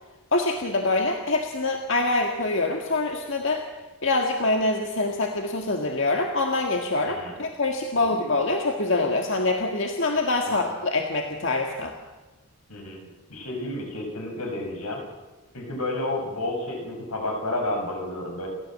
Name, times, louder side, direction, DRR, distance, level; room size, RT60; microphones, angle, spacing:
voice 1, 0.3-3.6 4.0-11.9, left 2 dB, 55° left, 2 dB, 1.8 m, -25 dB
voice 2, 12.7-15.0 15.5-18.5, left 2 dB, 85° left, 2 dB, 6.2 m, -31 dB
29.5 x 13.5 x 7.6 m, 1.2 s
head